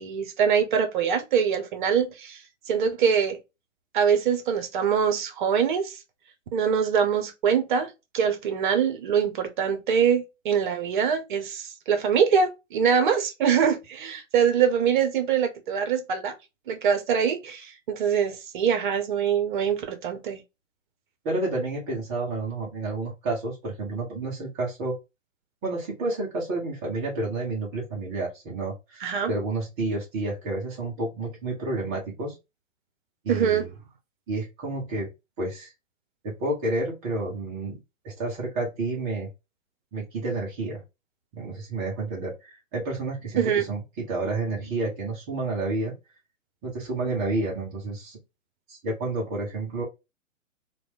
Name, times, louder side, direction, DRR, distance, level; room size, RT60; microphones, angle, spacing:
voice 1, 0.0-2.4 2.7-3.4 3.9-6.0 6.5-16.3 16.7-20.4 29.0-29.3 33.3-33.7 43.4-43.7, right 7 dB, 40° right, 0.7 m, -24 dB
voice 2, 21.2-25.0 25.6-32.4 33.2-33.7 34.3-35.1 35.4-35.7 36.2-37.8 38.0-39.3 39.9-40.8 41.3-45.9 46.6-48.2 48.7-49.8, right 2 dB, 15° right, 0.4 m, -30 dB
3.0 x 2.2 x 2.6 m
figure-of-eight pair, 120°, 39 cm